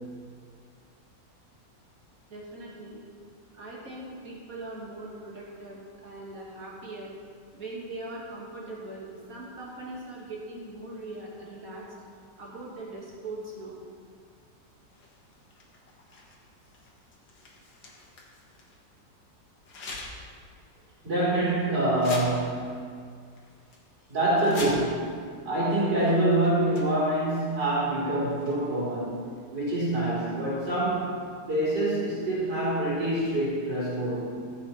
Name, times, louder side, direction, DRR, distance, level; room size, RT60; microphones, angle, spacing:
voice 1, 2.3-3.0 3.5-7.1 7.5-11.8 12.4-13.8 24.0-24.1, right 2 dB, 50° right, -5 dB, 2.8 m, -40 dB
sound 1, 14.9-18.8 19.6-20.3 20.7-20.9 21.5-21.6 21.9-22.7 23.0-23.1 23.4-23.8 24.3-25.1 26.0-26.1 26.4-27.2 28.2-28.8, left 2 dB, 75° left, 2.2 m, -43 dB
voice 2, 21.0-22.8 24.1-25.1 25.5-29.2 29.5-31.1 31.5-34.4, right 1 dB, 65° right, -10 dB, 4.3 m, -26 dB
15.5 x 8.1 x 4.4 m, 2.1 s
omnidirectional pair, 2.0 m